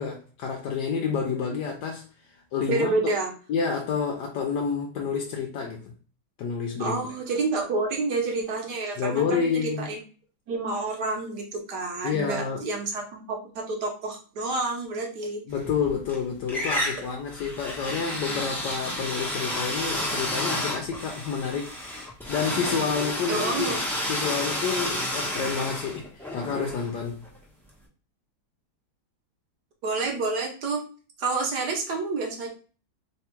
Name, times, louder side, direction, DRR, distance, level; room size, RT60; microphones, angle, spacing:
voice 1, 0.0-3.1 3.5-5.9 6.4-7.1 9.0-9.9 12.0-12.6 15.4-21.7 22.3-23.8 24.1-27.2, left 6 dB, 75° left, 1.0 m, -29 dB
voice 2, 2.7-3.3 6.8-10.0 10.5-15.4 23.3-23.8 29.8-30.8 31.2-32.5, right 3 dB, 60° right, 1.2 m, -29 dB
sound 1, 15.6-16.2 16.5-27.4, left 1 dB, 5° left, 0.4 m, -31 dB
3.4 x 2.3 x 4.3 m
omnidirectional pair, 2.2 m